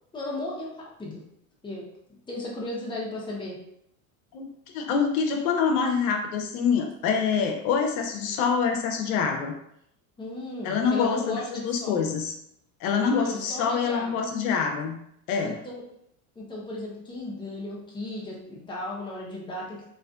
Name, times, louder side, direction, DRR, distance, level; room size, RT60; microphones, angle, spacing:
voice 1, 0.1-1.2 1.6-1.9 2.3-3.6 10.2-12.0 13.0-14.1 15.4-15.8 16.4-19.8, left 2 dB, 10° left, -3 dB, 0.7 m, -35 dB
voice 2, 4.7-9.5 10.6-12.3 12.8-15.0 15.3-15.6, left 6 dB, 80° left, 4 dB, 0.6 m, -25 dB
2.4 x 2.4 x 2.3 m, 0.74 s
supercardioid pair, 100°, 42 cm